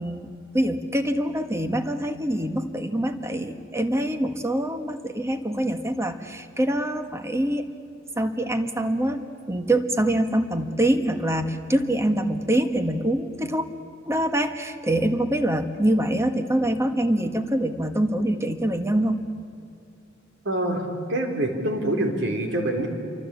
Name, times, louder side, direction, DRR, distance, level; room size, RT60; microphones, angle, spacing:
voice 1, 0.0-7.7 8.2-13.6 14.0-19.2, right 1 dB, 15° right, 8 dB, 1.5 m, -25 dB
voice 2, 20.5-20.8 21.1-22.9, right 1 dB, 65° right, 4 dB, 4.0 m, -25 dB
28.0 x 24.0 x 8.4 m, 2.5 s
head